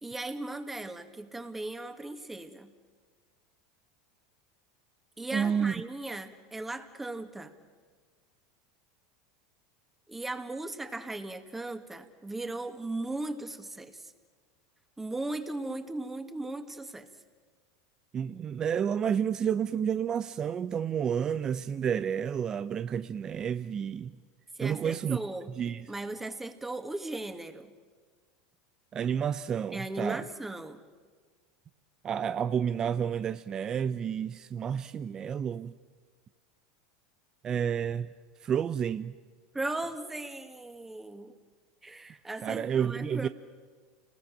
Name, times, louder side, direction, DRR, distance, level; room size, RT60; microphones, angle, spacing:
voice 1, 0.0-2.7 5.2-7.5 10.1-14.1 15.0-17.1 24.6-25.5 25.9-27.7 29.7-30.8 39.5-41.4 41.8-43.3, right 2 dB, 10° right, 2.0 m, -37 dB
voice 2, 5.3-5.7 18.1-24.1 24.6-25.2 25.6-25.8 28.9-30.2 32.0-35.7 37.4-38.1 38.4-39.1 42.4-43.3, right 8 dB, 35° right, 0.7 m, -30 dB
29.5 x 20.5 x 7.7 m
hypercardioid pair, 95°, 2 cm